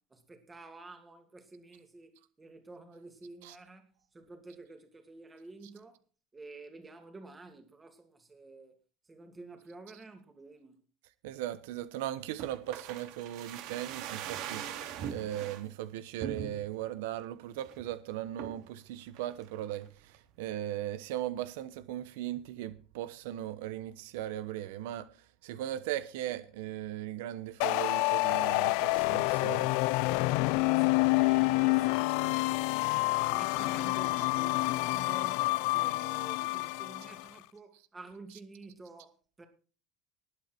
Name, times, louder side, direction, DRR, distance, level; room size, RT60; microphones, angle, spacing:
voice 1, 0.0-6.0 6.3-8.8 9.1-10.8 30.5-39.5, right 2 dB, 15° right, 2.5 m, -50 dB
voice 2, 11.2-14.6 15.1-25.1 25.4-29.7, right 13 dB, 90° right, 1.1 m, -38 dB
sound 1, 12.4-15.6 16.2-16.8 17.2-17.3 17.6-17.9 18.4-18.7 19.2-19.9 20.1-20.2, right 9 dB, 60° right, 2.9 m, -41 dB
sound 2, 27.6-37.2, left 22 dB, 70° left, 0.5 m, -28 dB
19.5 x 8.5 x 4.5 m
cardioid pair, 155°, 0 cm